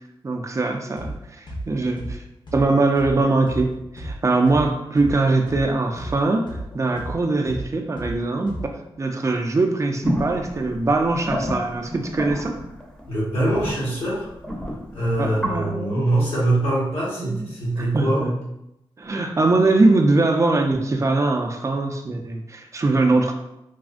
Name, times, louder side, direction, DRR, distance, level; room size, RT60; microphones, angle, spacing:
voice 1, 0.2-2.2 2.5-8.6 9.0-12.5 15.2-16.0 17.2-17.5 17.8-18.4 19.0-23.3, right 2 dB, 30° right, 3 dB, 0.4 m, -22 dB
sound 1, 1.0-1.2 1.5-5.2 5.5-8.9, right 1 dB, 50° left, 0.7 m, -34 dB
sound 2, 10.0-15.6, equal, 10° left, 0.6 m, -30 dB
voice 2, 13.1-14.3 14.9-18.2, right 1 dB, 80° left, -7 dB, 1.2 m, -23 dB
3.3 x 2.1 x 2.4 m, 0.84 s
wide cardioid pair, 85°, 10 cm